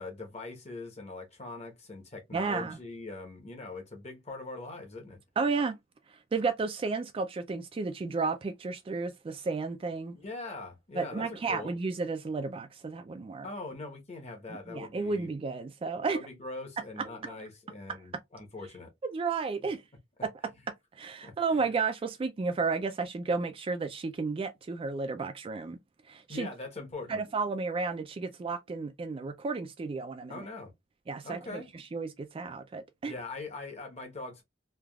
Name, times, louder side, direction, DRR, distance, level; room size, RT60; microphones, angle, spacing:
voice 1, 0.0-5.2 10.1-11.7 13.4-15.3 16.0-18.9 21.2-21.3 26.3-27.2 30.3-30.7 31.2-31.7 33.0-34.4, left 3 dB, 35° left, 1.0 m, -42 dB
voice 2, 2.3-2.8 5.4-5.8 6.3-10.1 10.9-13.5 14.7-16.2 17.0-17.3 17.9-18.0 19.1-19.8 20.2-20.3 20.9-25.8 26.1-26.5 27.1-30.5 31.1-33.1, right 4 dB, 30° right, 0.3 m, -32 dB
3.3 x 2.3 x 2.2 m
head